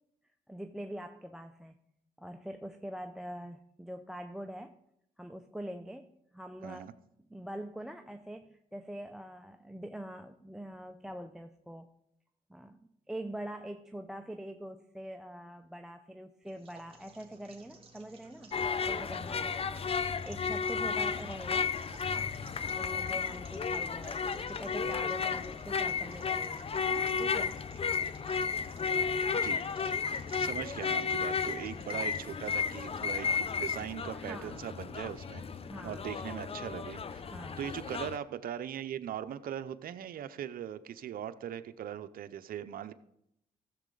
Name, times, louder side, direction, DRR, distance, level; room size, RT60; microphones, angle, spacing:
voice 1, 0.5-1.8 2.2-4.8 5.2-6.9 7.3-11.9 12.5-18.6 18.9-19.5 20.2-21.8 22.7-26.7 27.2-27.6 34.1-34.6 35.7-36.1 37.1-37.7, right 1 dB, 5° right, 8 dB, 0.6 m, -44 dB
voice 2, 6.6-6.9 29.3-29.6 30.4-35.4 35.8-37.2 37.6-42.9, right 10 dB, 70° right, 12 dB, 0.7 m, -40 dB
sound 1, 16.4-33.9, right 4 dB, 35° right, 2.3 m, -56 dB
sound 2, 18.5-38.2, left 5 dB, 40° left, 0.6 m, -33 dB
14.5 x 7.4 x 3.9 m, 0.77 s
cardioid pair, 70°, 15 cm